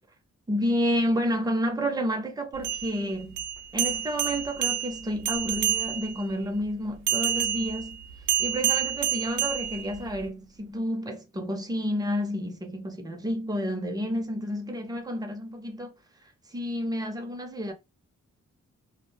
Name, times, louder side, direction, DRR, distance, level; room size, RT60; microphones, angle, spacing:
voice 1, 0.5-3.4 3.7-8.0 8.4-15.9 16.2-17.7, equal, 15° right, 0.5 m, -30 dB
sound 1, 2.5-6.2 7.1-10.2, right 10 dB, 85° right, 0.5 m, -29 dB
2.3 x 2.0 x 3.2 m
wide cardioid pair, 180°, 29 cm